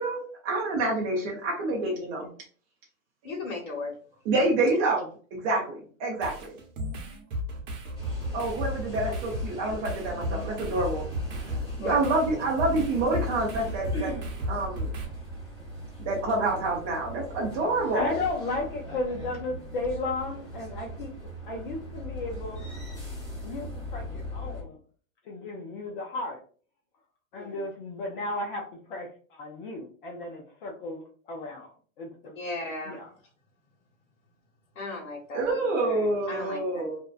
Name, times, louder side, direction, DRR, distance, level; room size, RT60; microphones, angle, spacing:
voice 1, 0.0-2.3 4.2-6.5 8.3-11.0 11.8-14.1 14.5-14.9 16.0-18.1 35.3-37.0, right 2 dB, 30° right, -2 dB, 0.5 m, -27 dB
voice 2, 3.2-3.9 11.8-12.0 27.3-27.6 32.4-33.0 34.8-36.6, left 3 dB, 70° left, -4 dB, 1.0 m, -36 dB
sound 1, 6.2-15.1, equal, 60° right, 0.9 m, -34 dB
sound 2, 7.9-24.6, right 1 dB, 10° left, 0.9 m, -40 dB
voice 3, 17.9-22.6 23.4-24.8 25.3-26.4 27.3-32.3 32.8-33.1, left 2 dB, 40° left, 1 dB, 0.5 m, -34 dB
2.5 x 2.1 x 2.3 m, 0.42 s
hypercardioid pair, 130°, 41 cm